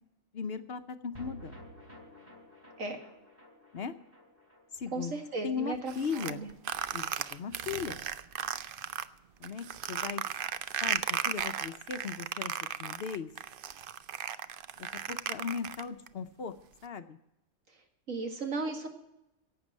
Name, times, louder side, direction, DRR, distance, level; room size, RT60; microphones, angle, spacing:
voice 1, 0.3-1.5 3.7-3.9 4.7-5.1 5.4-6.4 6.9-8.0 9.4-10.3 10.8-13.3 14.8-16.5 16.8-17.2, left 6 dB, 55° left, 9 dB, 0.8 m, -38 dB
Psychedelic Chord Stab C, 1.1-7.6 7.8-7.9 8.2-8.3, left 1 dB, 25° right, 4.2 m, -53 dB
voice 2, 4.9-6.5 18.1-18.9, right 3 dB, 80° right, 3 dB, 2.2 m, -35 dB
sound 1, 5.9-9.1 9.4-16.1, right 9 dB, 60° right, 0.6 m, -35 dB
11.5 x 8.1 x 9.7 m, 0.88 s
omnidirectional pair, 1.4 m